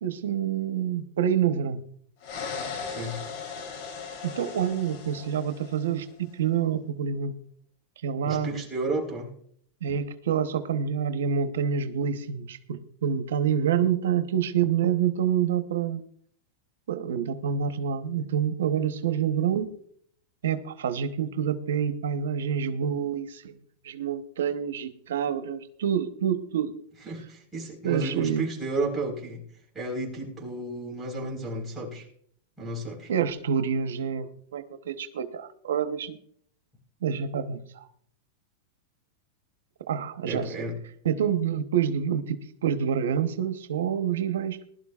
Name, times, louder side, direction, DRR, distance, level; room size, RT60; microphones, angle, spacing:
voice 1, 0.0-1.8 4.2-7.3 8.0-8.5 9.8-16.0 16.9-19.7 20.4-23.5 23.8-26.7 27.8-28.5 33.1-36.2 37.0-37.9 39.9-40.5 41.0-44.6, right 8 dB, 90° right, 8 dB, 1.0 m, -27 dB
sound 1, 2.2-6.1, left 5 dB, 50° left, 3.5 m, -38 dB
voice 2, 2.8-3.2 8.2-9.3 27.0-29.4 29.7-32.1 32.6-33.1 40.2-40.8, right 2 dB, 10° right, -2 dB, 4.4 m, -32 dB
20.0 x 12.0 x 2.4 m, 0.62 s
supercardioid pair, 145°, 0 cm